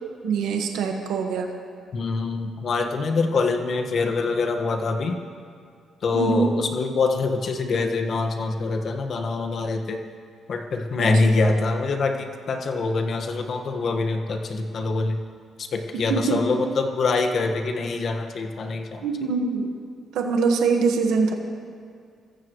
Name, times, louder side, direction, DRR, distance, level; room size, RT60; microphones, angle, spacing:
voice 1, 0.0-1.5 6.1-6.5 11.0-11.1 16.1-16.4 19.0-19.7 20.1-21.3, right 5 dB, 85° right, 3 dB, 1.5 m, -23 dB
voice 2, 1.9-5.2 6.0-10.0 10.5-15.2 15.6-19.1, left 3 dB, 55° left, 4 dB, 1.6 m, -24 dB
25.5 x 15.0 x 3.2 m, 2.3 s
cardioid pair, 90°, 0 cm